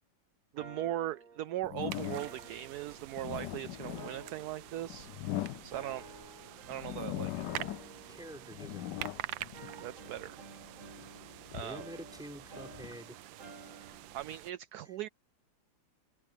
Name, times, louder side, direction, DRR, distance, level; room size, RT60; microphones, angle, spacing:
voice 1, 0.5-5.1 5.6-6.1 6.7-7.5 9.8-10.4 11.5-11.8 14.1-15.1, right 13 dB, 70° right, 1.0 m, -39 dB
sound 1, 0.6-3.5 3.9-5.3 5.7-7.1 7.4-9.2 9.5-14.2, right 3 dB, 45° right, 2.7 m, -53 dB
sound 2, 1.6-2.5 3.0-6.2 6.7-8.0 8.3-10.3 10.8-12.9, left 14 dB, 75° left, 1.2 m, -41 dB
sound 3, 1.9-14.5, right 14 dB, 90° right, 1.4 m, -47 dB
voice 2, 8.1-9.1 11.6-13.2, equal, ahead, 6.0 m, -47 dB
open air
omnidirectional pair, 2.0 m